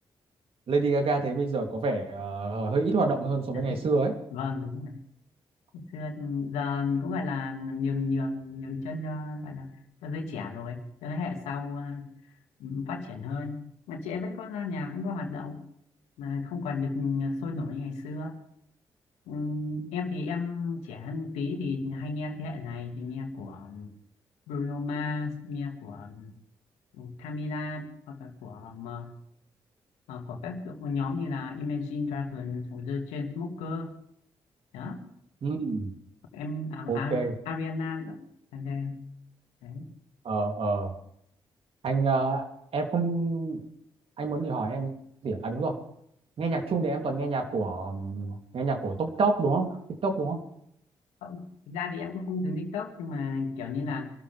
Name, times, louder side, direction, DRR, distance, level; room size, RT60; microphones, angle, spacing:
voice 1, 0.7-4.1 35.4-35.9 36.9-37.3 40.2-40.9 41.8-42.4 42.7-43.6 44.2-44.9 45.2-45.7 46.4-49.7 50.0-50.4, right 3 dB, 60° right, 3 dB, 3.3 m, -27 dB
voice 2, 4.3-5.0 5.7-9.7 10.0-12.1 12.6-13.6 13.9-15.6 16.2-18.4 19.3-23.9 24.5-26.3 26.9-29.1 30.1-33.9 34.7-35.1 36.3-38.3 38.5-39.0 39.6-39.9 51.2-54.1, left 4 dB, 85° left, 3 dB, 2.4 m, -33 dB
25.5 x 13.0 x 3.6 m, 0.71 s
hypercardioid pair, 45°, 11 cm